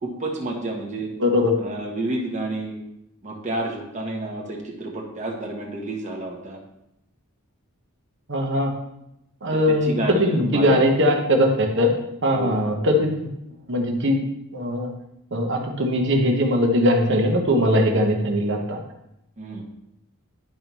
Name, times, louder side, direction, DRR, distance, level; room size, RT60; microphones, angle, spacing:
voice 1, 0.0-1.2 1.6-2.7 3.2-6.6 9.7-11.1 12.3-12.6 19.4-19.6, right 2 dB, 35° right, -1 dB, 1.2 m, -30 dB
voice 2, 1.2-1.6 8.3-8.7 9.4-11.9 12.2-13.2 13.7-14.2 14.5-14.9 15.3-18.8, equal, 55° right, 2 dB, 1.2 m, -20 dB
10.5 x 5.4 x 3.1 m, 0.82 s
head